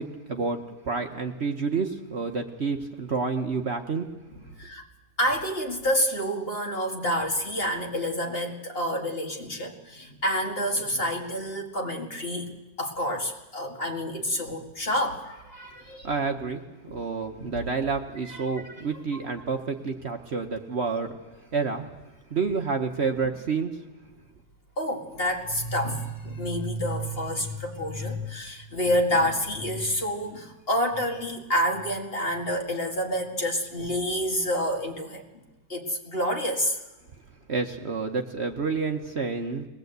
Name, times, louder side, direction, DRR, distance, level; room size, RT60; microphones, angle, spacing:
voice 1, 0.0-4.1 16.0-21.2 21.5-21.9 22.3-23.8 37.5-39.6, right 4 dB, 45° right, 4 dB, 1.2 m, -29 dB
voice 2, 5.2-12.5 12.8-16.1 16.9-17.0 17.4-17.5 18.3-18.7 24.8-35.2 35.7-36.8, equal, 35° left, 1 dB, 2.3 m, -28 dB
21.0 x 19.5 x 8.1 m, 1.1 s
omnidirectional pair, 1.7 m